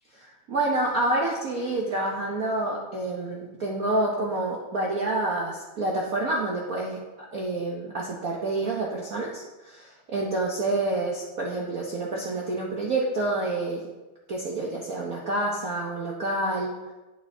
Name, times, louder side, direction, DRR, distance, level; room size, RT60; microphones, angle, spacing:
voice 1, 0.1-7.0 7.3-13.9 14.3-16.9, right 2 dB, 50° right, -3 dB, 1.1 m, -28 dB
11.0 x 5.7 x 3.8 m, 1.1 s
omnidirectional pair, 2.4 m